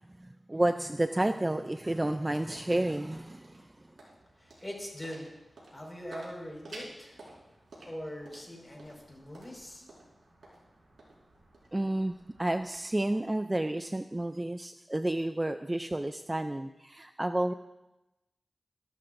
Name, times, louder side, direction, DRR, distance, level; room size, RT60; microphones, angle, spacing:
voice 1, 0.2-3.7 11.7-17.5, right 1 dB, 20° right, 9 dB, 0.4 m, -31 dB
sound 1, 1.7-13.8, right 2 dB, 90° right, 4.9 m, -54 dB
voice 2, 4.4-5.3 5.7-7.2 7.8-9.9, equal, 20° left, -1 dB, 5.1 m, -42 dB
23.0 x 12.5 x 2.6 m, 1.0 s
wide cardioid pair, 75°, 0 cm